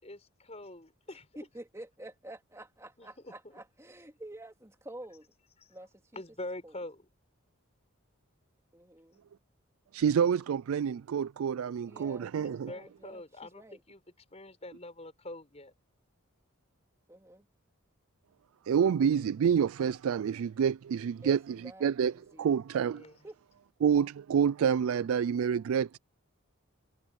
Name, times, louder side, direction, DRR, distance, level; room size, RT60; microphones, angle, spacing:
voice 1, 0.0-1.3 3.0-3.3 5.6-5.8 6.1-7.1 12.4-14.0 14.3-15.7 22.9-23.2, left 1 dB, 30° left, 5.9 m, -44 dB
voice 2, 1.3-5.3 5.7-6.2 6.6-6.7 8.7-9.2 11.8-13.8 17.1-17.4 21.2-22.6 23.2-23.4, right 1 dB, 15° right, 2.8 m, -49 dB
voice 3, 9.9-12.7 18.7-22.1 22.4-23.0 23.8-26.0, right 7 dB, 75° right, 0.3 m, -28 dB
head